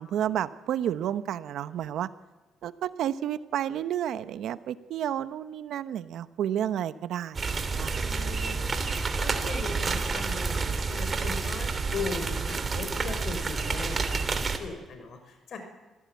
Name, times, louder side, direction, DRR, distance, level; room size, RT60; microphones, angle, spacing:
voice 1, 0.0-2.1 2.6-8.0, right 10 dB, 75° right, 13 dB, 1.0 m, -31 dB
sound 1, 7.3-14.6, right 4 dB, 35° right, 3.0 m, -29 dB
voice 2, 8.0-15.7, left 4 dB, 60° left, 6 dB, 6.2 m, -39 dB
25.0 x 16.0 x 9.5 m, 1.2 s
cardioid pair, 90°, 0 cm